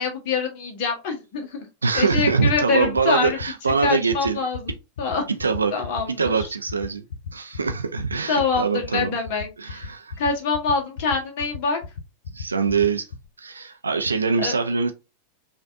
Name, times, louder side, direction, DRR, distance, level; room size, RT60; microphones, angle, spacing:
voice 1, 0.0-1.7 1.9-3.4 3.8-4.7 5.0-5.2 5.7-6.5 8.3-9.9 10.2-11.8 14.4-14.6, left 4 dB, 45° left, 1.1 m, -25 dB
voice 2, 1.8-4.4 5.3-5.7 6.2-7.0 7.3-9.2 9.6-10.2 12.3-13.1 13.4-14.9, right 5 dB, 75° right, 0.4 m, -23 dB
sound 1, 2.0-13.3, left 5 dB, 65° left, 0.5 m, -34 dB
5.1 x 2.5 x 2.4 m
figure-of-eight pair, 90°, 0 cm